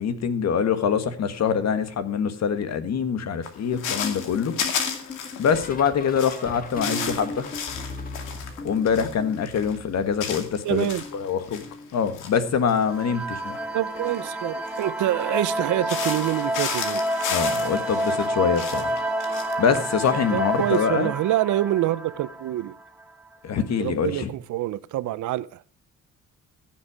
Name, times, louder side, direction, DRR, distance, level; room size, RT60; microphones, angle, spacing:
voice 1, 0.0-4.5 5.4-7.5 8.6-11.6 11.9-13.5 17.3-19.0 19.6-21.1 23.4-24.3, left 7 dB, 60° left, 1.7 m, -24 dB
sound 1, 3.4-5.8 6.0-12.4 12.7-15.5 15.8-20.8, left 7 dB, 90° left, 2.4 m, -33 dB
sound 2, 3.7-10.5 10.8-12.4 13.3-13.7 14.0-14.3 15.8-16.1 16.5-16.7 18.3-18.4, left 3 dB, 30° left, 1.9 m, -39 dB
voice 2, 10.6-11.0 13.7-17.1 20.3-22.8 23.8-25.6, right 14 dB, 75° right, 0.7 m, -26 dB
sound 3, 12.9-23.3, right 1 dB, ahead, 3.6 m, -29 dB
15.0 x 7.6 x 5.0 m
cardioid pair, 90°, 30 cm